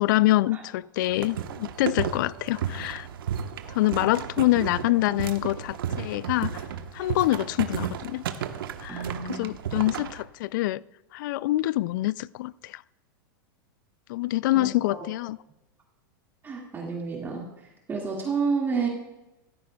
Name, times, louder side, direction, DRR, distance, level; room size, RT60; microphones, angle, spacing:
voice 1, 0.0-3.1 3.7-6.6 6.9-8.2 8.8-10.8 11.1-12.8 14.1-15.4, left 17 dB, 60° left, 0.4 m, -25 dB
sound 1, 1.0-10.2, right 8 dB, 80° right, 1.1 m, -33 dB
voice 2, 8.9-9.5 14.5-15.1 16.4-18.9, right 5 dB, 20° right, 2.0 m, -30 dB
16.5 x 14.0 x 2.3 m
supercardioid pair, 135°, 12 cm